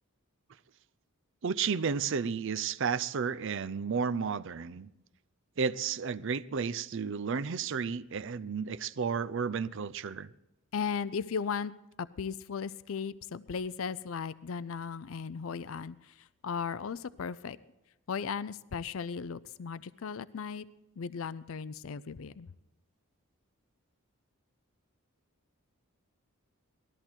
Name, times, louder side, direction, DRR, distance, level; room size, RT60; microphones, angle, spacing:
voice 1, 1.4-4.9 5.6-10.3, right 6 dB, 55° right, 0.5 m, -32 dB
voice 2, 10.7-11.7 12.0-17.6 18.1-20.7 21.0-22.5, left 6 dB, 65° left, 0.5 m, -36 dB
19.5 x 13.5 x 4.5 m
head